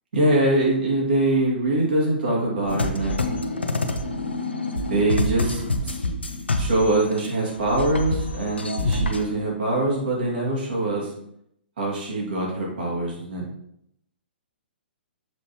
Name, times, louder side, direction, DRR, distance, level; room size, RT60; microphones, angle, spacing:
voice 1, 0.1-3.2 4.6-6.0 6.6-11.1 11.8-13.5, right 2 dB, 60° right, -4 dB, 2.6 m, -23 dB
sound 1, 2.7-7.3 7.6-9.2, left 2 dB, 80° left, 0.8 m, -26 dB
7.1 x 5.4 x 3.1 m, 0.75 s
figure-of-eight pair, 120°, 6 cm